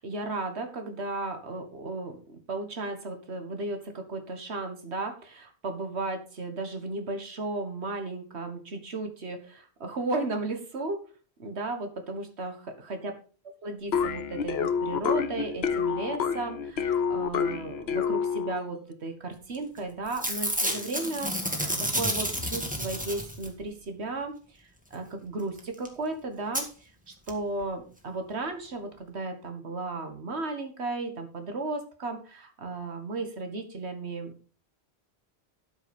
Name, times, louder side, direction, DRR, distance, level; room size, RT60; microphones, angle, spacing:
voice 1, 0.0-11.0 11.4-13.1 13.6-34.3, right 2 dB, 90° right, 6 dB, 1.9 m, -35 dB
sound 1, 13.9-18.7, left 7 dB, 75° left, 1.1 m, -28 dB
Packing tape duct tape / Tearing, 19.5-19.8 20.1-23.7 25.6-25.7 25.8-25.9 26.5-26.6 27.3-27.4 27.6-27.7, equal, 5° right, 2.0 m, -30 dB
12.5 x 6.1 x 5.3 m, 0.39 s
omnidirectional pair, 1.1 m